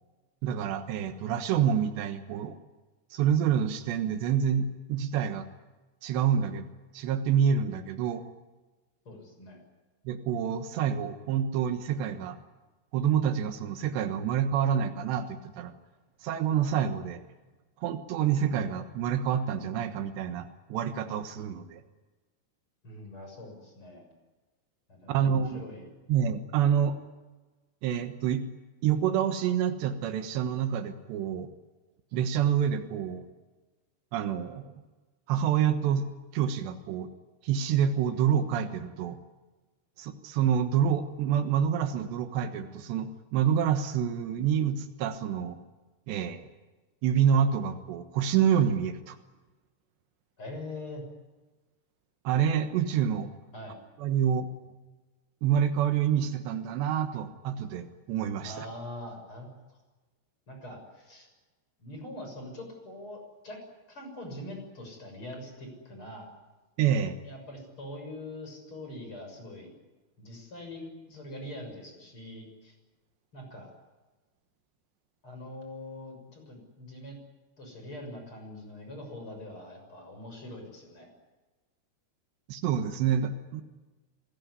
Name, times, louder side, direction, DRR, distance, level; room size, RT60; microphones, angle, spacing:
voice 1, 0.4-2.6 3.1-5.5 6.0-6.7 6.9-8.2 10.1-12.4 12.9-15.7 16.2-17.2 17.8-21.8 25.1-25.6 26.1-27.0 27.8-28.5 28.8-31.5 32.1-33.3 34.1-34.7 35.3-37.1 37.4-39.2 40.0-45.6 46.1-46.5 47.0-49.2 52.3-53.3 54.0-54.5 55.4-58.7 66.8-67.2 82.5-83.6, right 8 dB, 85° right, 8 dB, 3.5 m, -27 dB
voice 2, 9.1-9.6 22.8-24.1 24.9-25.9 50.4-51.1 53.5-53.8 58.4-59.5 60.5-61.3 61.8-63.6 63.9-66.3 67.2-69.7 70.2-72.7 73.3-73.7 75.2-77.2 77.6-81.1, left 1 dB, 30° left, 3 dB, 7.3 m, -43 dB
26.5 x 18.0 x 9.7 m, 1.2 s
omnidirectional pair, 4.8 m